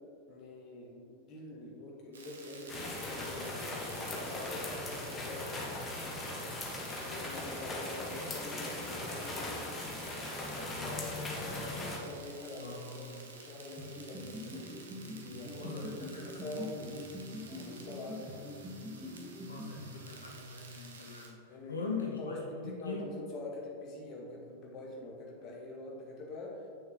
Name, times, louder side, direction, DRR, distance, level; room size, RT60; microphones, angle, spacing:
voice 1, 0.3-6.4 7.0-9.6 10.7-14.8 15.1-16.0 16.2-17.1 17.5-18.5 21.5-26.7, left 2 dB, 35° left, -2 dB, 1.5 m, -45 dB
sound 1, 2.1-21.3, right 4 dB, 65° right, 1.1 m, -52 dB
sound 2, 2.7-12.0, left 2 dB, 15° left, 1.2 m, -39 dB
voice 2, 12.6-13.2 15.5-16.3 19.5-21.3 21.7-22.4 22.6-23.0, left 4 dB, 75° left, -2 dB, 0.9 m, -41 dB
sound 3, 13.8-20.5, left 1 dB, 15° right, 1.3 m, -45 dB
8.5 x 6.5 x 2.9 m, 2.4 s
figure-of-eight pair, 90°, 0 cm